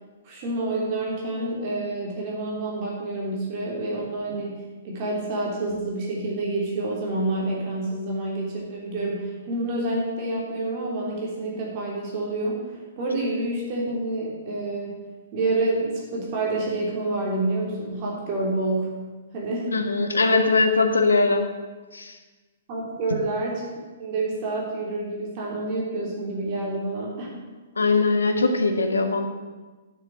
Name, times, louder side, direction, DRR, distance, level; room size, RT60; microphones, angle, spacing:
voice 1, 0.2-12.6 13.0-14.9 15.3-18.9 19.3-19.7 20.2-20.3 22.7-23.6 24.0-27.3, right 2 dB, 35° right, -3 dB, 3.3 m, -28 dB
voice 2, 19.7-21.5 21.9-22.2 27.8-29.2, left 3 dB, 70° left, 5 dB, 1.6 m, -21 dB
9.2 x 6.9 x 9.0 m, 1.3 s
figure-of-eight pair, 115°, 0 cm